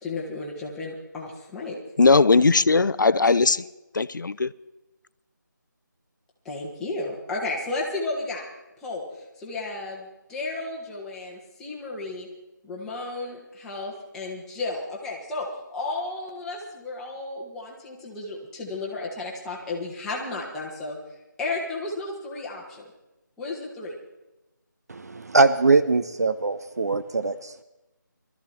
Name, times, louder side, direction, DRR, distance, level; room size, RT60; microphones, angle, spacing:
voice 1, 0.0-1.8 3.2-3.3 6.4-8.4 8.8-9.0 9.4-12.3 12.6-21.0 21.4-22.8 23.4-23.9, left 2 dB, 5° left, 1.3 m, -33 dB
voice 2, 2.0-3.6 3.9-4.5, left 4 dB, 75° left, 0.6 m, -18 dB
voice 3, 24.9-27.6, right 3 dB, 55° right, 0.6 m, -22 dB
20.0 x 13.5 x 4.4 m
figure-of-eight pair, 170°, 11 cm